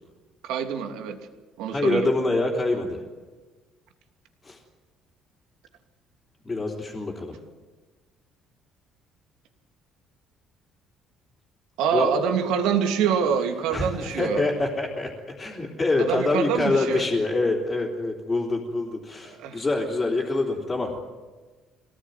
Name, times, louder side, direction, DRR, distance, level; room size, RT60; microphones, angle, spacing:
voice 1, 0.4-1.2 1.6-2.1 11.8-14.4 16.0-17.0 19.4-19.6, right 7 dB, 85° right, 5 dB, 3.0 m, -25 dB
voice 2, 1.7-3.0 4.4-4.6 6.4-7.4 11.9-12.1 13.7-20.9, left 2 dB, 15° left, -4 dB, 3.4 m, -25 dB
25.0 x 18.5 x 9.5 m, 1.3 s
cardioid pair, 170°, 0 cm